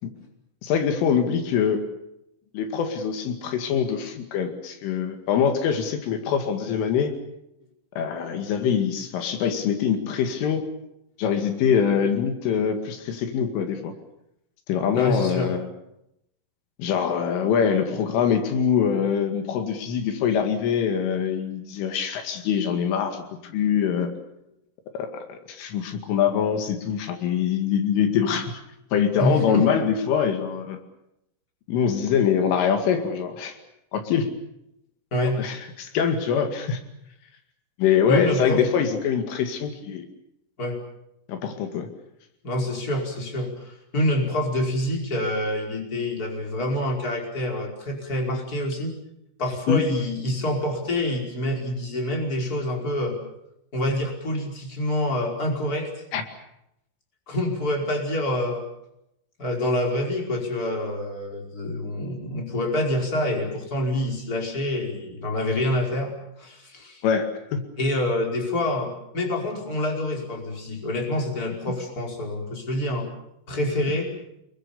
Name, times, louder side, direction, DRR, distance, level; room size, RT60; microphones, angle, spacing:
voice 1, 0.6-1.8 2.5-7.1 8.0-10.7 11.2-13.9 14.7-15.7 16.8-24.1 24.9-28.5 28.9-30.8 31.7-33.6 33.9-34.3 35.4-36.8 37.8-40.1 41.3-41.9 49.7-49.8 56.1-56.2 67.0-67.6, left 7 dB, 80° left, 7 dB, 4.7 m, -24 dB
voice 2, 14.9-15.5 29.2-29.6 35.1-35.4 38.1-38.7 40.6-40.8 42.4-48.9 49.4-53.2 53.7-55.9 57.3-58.6 59.4-67.0 67.8-73.1 73.5-74.1, left 1 dB, 20° left, 1 dB, 5.1 m, -26 dB
28.0 x 22.0 x 7.1 m, 0.81 s
omnidirectional pair, 5.6 m